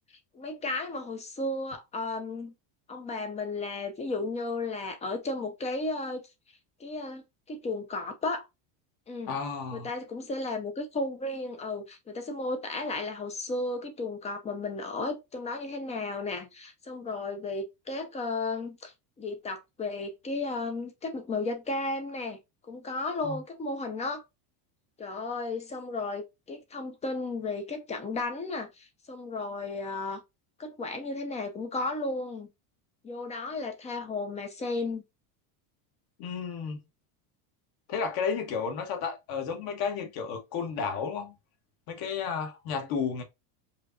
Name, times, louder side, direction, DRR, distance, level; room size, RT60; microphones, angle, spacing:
voice 1, 0.3-2.5 2.9-6.2 6.8-8.5 9.1-9.4 9.7-22.4 22.7-24.2 25.0-30.2 30.6-32.5 33.0-35.0, left 3 dB, 15° left, 0.4 m, -34 dB
voice 2, 9.3-9.9 23.2-23.4 36.2-36.8 37.9-41.3 41.9-43.2, left 6 dB, 45° left, 1.3 m, -32 dB
4.9 x 2.8 x 2.6 m
cardioid pair, 155°, 50 cm